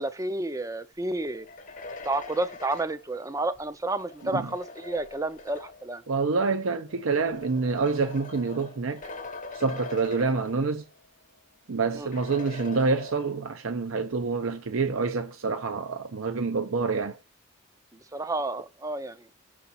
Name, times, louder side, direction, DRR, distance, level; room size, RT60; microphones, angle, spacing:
voice 1, 0.0-1.5 2.0-6.0 11.9-12.1 18.1-19.2, right 2 dB, 15° right, 0.5 m, -30 dB
sound 1, 1.3-6.0 6.9-11.1 11.4-11.5 12.1-13.7, left 3 dB, 35° left, 0.8 m, -43 dB
voice 2, 6.1-9.0 9.5-10.9 11.7-17.2, right 4 dB, 70° right, 0.6 m, -27 dB
5.8 x 4.2 x 4.1 m
head